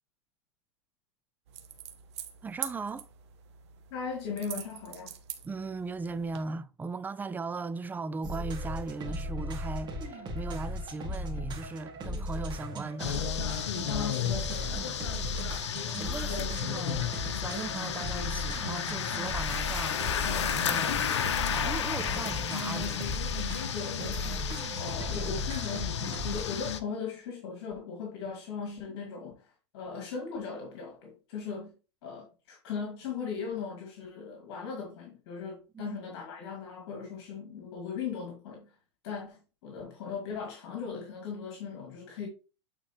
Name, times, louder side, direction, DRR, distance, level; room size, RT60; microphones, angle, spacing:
sound 1, 1.5-6.4, right 10 dB, 70° right, 1.3 m, -44 dB
voice 1, 2.4-3.1 5.4-13.5 15.9-17.1 17.3-20.0 20.5-21.1 21.5-23.2 25.1-25.4 35.7-36.0, right 3 dB, 10° right, 0.4 m, -38 dB
voice 2, 3.9-5.1 13.9-14.9 16.3-16.5 23.7-24.2 24.7-26.0 26.3-31.7 32.0-38.6 39.0-42.3, left 5 dB, 60° left, 2.0 m, -38 dB
sound 2, 8.2-26.4, equal, 30° right, 2.2 m, -37 dB
sound 3, 13.0-26.8, left 8 dB, 75° left, 0.9 m, -32 dB
8.9 x 4.3 x 3.0 m
hypercardioid pair, 100°, 15 cm